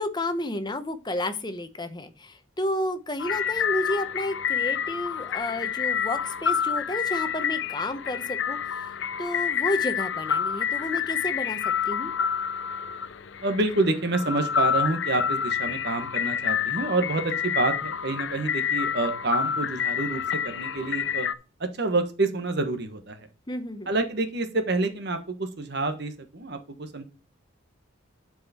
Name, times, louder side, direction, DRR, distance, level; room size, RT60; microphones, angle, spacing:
voice 1, 0.0-8.6 9.2-11.6 11.9-12.1 23.5-23.9, left 1 dB, 20° left, 10 dB, 0.8 m, -31 dB
sound 1, 3.2-21.3, left 8 dB, 65° left, 0.5 m, -28 dB
voice 2, 13.4-21.3 21.6-23.3 23.9-27.0, right 2 dB, 55° right, 7 dB, 1.3 m, -28 dB
11.5 x 4.8 x 4.3 m, 0.32 s
head